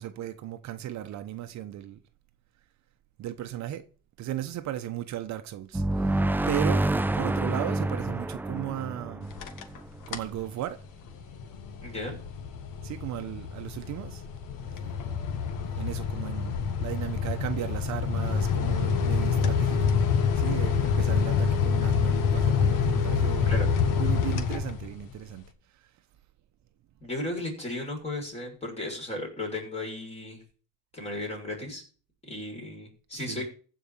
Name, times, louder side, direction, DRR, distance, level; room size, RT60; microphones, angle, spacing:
voice 1, 0.0-2.0 3.2-3.8 4.2-9.4 10.1-10.8 12.8-14.2 14.7-14.8 15.8-19.9 20.3-23.5 24.0-25.9 33.1-33.4, right 12 dB, 55° right, 1.0 m, -36 dB
sound 1, 5.7-10.3, right 2 dB, 5° right, 0.5 m, -28 dB
sound 2, 9.2-9.8 10.1-10.4 10.8-25.1, left 6 dB, 65° left, 1.7 m, -27 dB
voice 2, 11.8-12.2 23.4-23.7 27.0-30.4 30.9-31.8 32.2-33.5, left 1 dB, 20° left, 6.4 m, -35 dB
15.0 x 5.1 x 7.0 m
cardioid pair, 110°, 34 cm